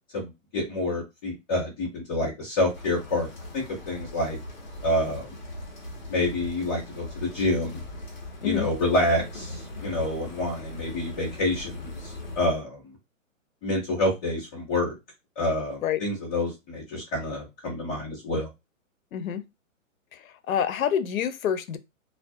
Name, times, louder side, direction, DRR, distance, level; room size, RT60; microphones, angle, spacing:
voice 1, 0.1-3.3 3.5-4.4 4.8-5.3 6.1-7.8 8.4-11.8 12.0-12.8 13.6-14.9 15.4-18.5, left 1 dB, 10° left, 0.7 m, -27 dB
sound 1, 2.7-12.4, left 1 dB, 35° left, 0.9 m, -40 dB
voice 2, 19.1-19.4 20.5-21.8, left 9 dB, 90° left, 0.6 m, -27 dB
2.3 x 2.2 x 2.6 m
hypercardioid pair, 175°, 40 cm